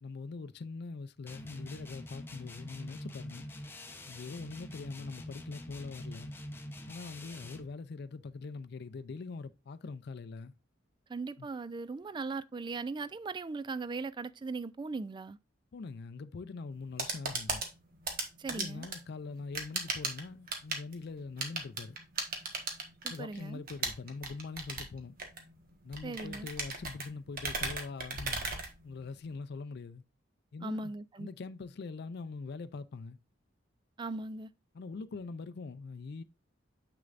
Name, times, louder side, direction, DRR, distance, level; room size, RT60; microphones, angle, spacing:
voice 1, 0.0-3.4 4.1-6.3 6.9-10.5 11.4-11.5 15.7-17.6 18.5-22.0 23.1-25.2 25.8-28.5 28.8-30.0 30.5-30.9 31.2-33.2 34.7-36.2, left 4 dB, 60° left, 0.4 m, -43 dB
sound 1, 1.3-7.7, left 1 dB, 10° left, 0.8 m, -45 dB
voice 2, 11.1-15.4 18.4-18.9 23.0-23.6 26.0-26.5 30.6-31.3 34.0-34.5, right 3 dB, 25° right, 0.3 m, -39 dB
sound 2, 16.7-29.3, right 3 dB, 50° right, 1.4 m, -38 dB
6.8 x 6.4 x 2.5 m
head